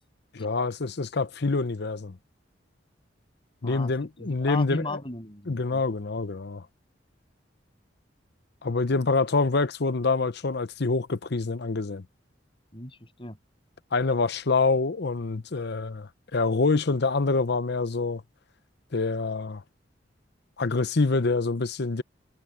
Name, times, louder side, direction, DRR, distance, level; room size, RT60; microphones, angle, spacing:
voice 1, 0.3-2.2 3.6-5.0 5.5-6.6 8.6-12.0 13.9-18.2 18.9-19.6 20.6-22.0, left 3 dB, 60° left, 0.8 m, -26 dB
voice 2, 4.2-5.8 12.7-13.4, left 2 dB, 30° left, 8.0 m, -36 dB
head